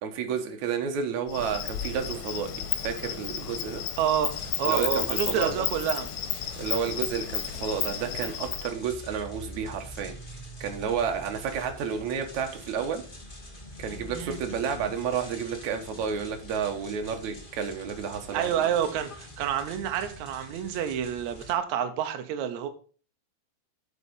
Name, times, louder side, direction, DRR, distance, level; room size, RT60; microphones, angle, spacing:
voice 1, 0.0-2.5 2.8-3.8 4.7-5.7 6.6-10.1 10.6-13.0 13.8-18.7, right 7 dB, 60° right, 5 dB, 2.1 m, -31 dB
Insect, 1.3-8.7, left 10 dB, 75° left, 2.8 m, -32 dB
voice 2, 4.0-4.3 4.6-6.1 14.1-14.4 18.3-22.7, right 9 dB, 90° right, 8 dB, 1.6 m, -28 dB
sound 1, 4.3-21.5, left 1 dB, 30° left, 0.8 m, -45 dB
8.3 x 6.1 x 5.3 m, 0.39 s
omnidirectional pair, 4.5 m